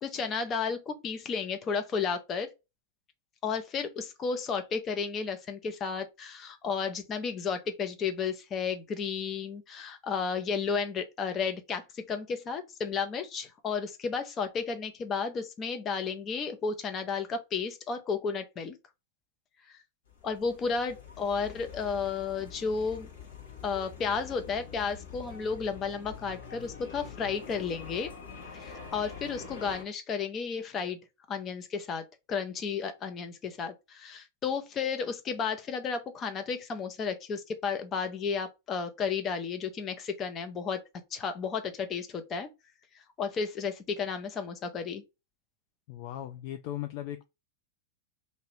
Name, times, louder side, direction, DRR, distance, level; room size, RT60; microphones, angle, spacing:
voice 1, 0.0-2.5 3.4-18.8 19.7-19.8 20.2-23.1 23.6-28.1 28.5-31.0 31.3-40.8 41.1-42.5 42.9-45.0, left 5 dB, 25° left, 0.7 m, -33 dB
sound 1, 20.1-29.8, left 6 dB, 65° left, 1.2 m, -45 dB
voice 2, 45.9-47.2, left 12 dB, 45° left, 0.3 m, -37 dB
2.8 x 2.7 x 3.1 m
figure-of-eight pair, 90°, 0 cm